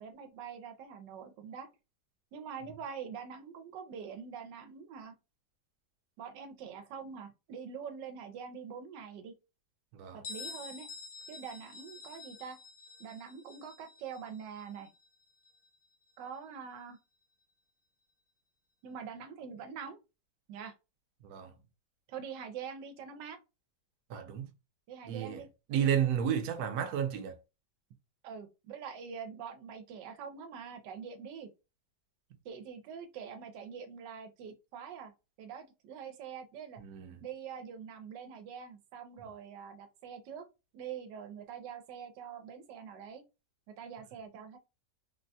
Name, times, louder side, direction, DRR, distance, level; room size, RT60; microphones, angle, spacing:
voice 1, 0.0-1.7 2.3-5.1 6.2-9.3 10.1-10.9 11.3-12.6 13.0-14.9 16.2-17.0 18.8-20.0 20.5-20.7 22.1-23.4 24.9-25.5 28.2-31.5 32.4-35.1 35.4-36.8 37.2-40.5 40.7-43.2 43.8-44.6, right 7 dB, 90° right, 1.3 m, -44 dB
Bell, 10.2-15.8, left 4 dB, 70° left, 1.0 m, -48 dB
voice 2, 24.1-24.5 25.1-25.4 25.7-27.4 36.8-37.2, right 9 dB, 65° right, 1.1 m, -32 dB
3.8 x 2.1 x 2.7 m
omnidirectional pair, 1.9 m